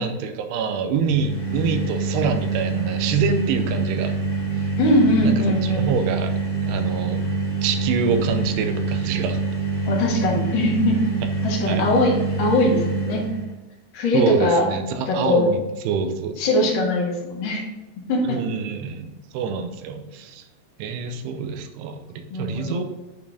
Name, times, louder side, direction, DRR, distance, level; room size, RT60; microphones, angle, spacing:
voice 1, 0.0-4.1 5.2-6.3 6.6-7.2 7.6-9.4 11.7-11.9 14.1-16.5 18.2-20.4 20.8-22.8, right 6 dB, 85° right, 7 dB, 2.8 m, -26 dB
sound 1, 0.9-13.5, right 4 dB, 45° left, 2.4 m, -26 dB
voice 2, 4.8-5.8 9.9-11.0 11.4-13.2 13.9-14.7 15.1-15.5 16.4-17.6 18.1-18.4 22.3-22.8, left 2 dB, 65° left, -5 dB, 1.2 m, -21 dB
8.6 x 4.4 x 3.4 m, 1.1 s
omnidirectional pair, 4.7 m